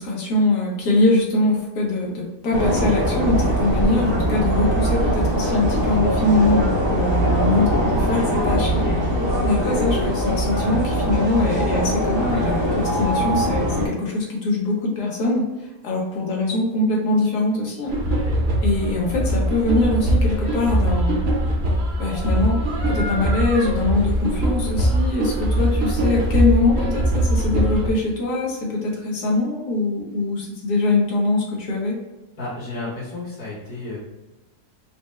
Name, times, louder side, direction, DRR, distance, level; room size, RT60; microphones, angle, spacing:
voice 1, 0.0-8.9 9.4-15.4 15.8-18.0 18.6-21.2 22.0-22.6 22.9-32.0, left 2 dB, 80° left, -2 dB, 1.6 m, -22 dB
sound 1, 2.5-13.9, equal, 30° right, 0.5 m, -21 dB
sound 2, 17.9-27.9, right 1 dB, 50° right, 0.9 m, -21 dB
voice 2, 32.4-34.0, left 2 dB, 60° left, -9 dB, 1.8 m, -32 dB
4.8 x 2.1 x 3.2 m, 1.1 s
omnidirectional pair, 1.7 m